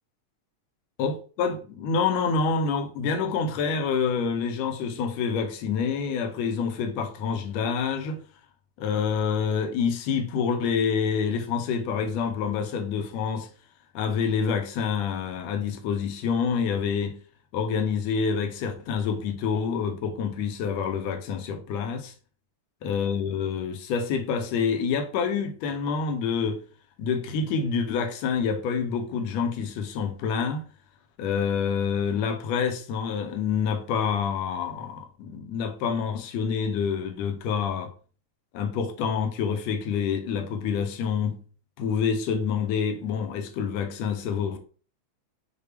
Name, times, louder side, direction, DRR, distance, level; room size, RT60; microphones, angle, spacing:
voice 1, 1.0-8.2 8.8-13.5 13.9-17.2 17.5-22.1 22.8-26.6 27.0-30.6 31.2-37.9 38.5-41.4 41.8-44.6, left 6 dB, 80° left, 1.6 m, -27 dB
6.5 x 2.2 x 3.3 m
omnidirectional pair, 3.5 m